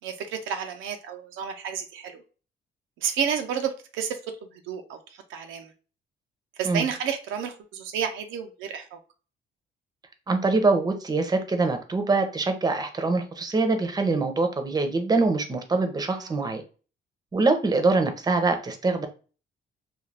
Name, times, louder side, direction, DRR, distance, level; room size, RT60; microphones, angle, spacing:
voice 1, 0.0-2.2 3.0-5.7 6.6-9.0 16.1-16.4, right 7 dB, 85° right, 6 dB, 0.5 m, -31 dB
voice 2, 10.3-16.6 17.3-19.1, right 3 dB, 20° right, 6 dB, 0.6 m, -24 dB
2.3 x 2.3 x 3.2 m, 0.36 s
cardioid pair, 90°, 20 cm